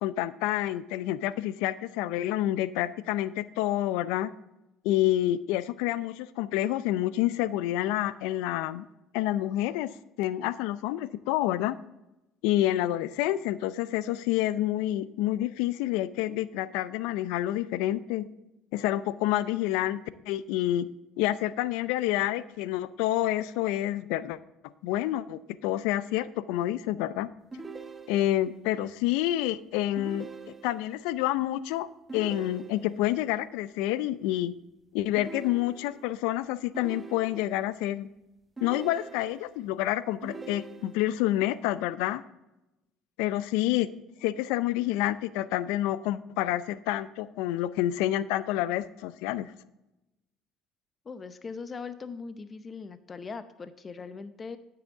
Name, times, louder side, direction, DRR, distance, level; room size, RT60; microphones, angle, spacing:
voice 1, 0.0-4.3 4.8-8.9 9.1-9.9 10.2-11.8 12.4-18.3 18.7-20.9 21.2-24.4 24.8-27.3 28.1-30.3 30.6-34.5 34.9-38.1 38.6-42.2 43.2-43.9 44.2-49.5, left 14 dB, 80° left, 16 dB, 0.4 m, -28 dB
sound 1, 27.5-28.5 30.0-31.0 32.1-33.1 35.2-36.2 36.7-37.7 38.6-39.6 40.2-41.2, right 4 dB, 20° right, 0.9 m, -43 dB
voice 2, 51.0-54.6, left 5 dB, 30° left, 12 dB, 0.7 m, -40 dB
9.4 x 7.8 x 3.6 m, 0.93 s
supercardioid pair, 85°, 0 cm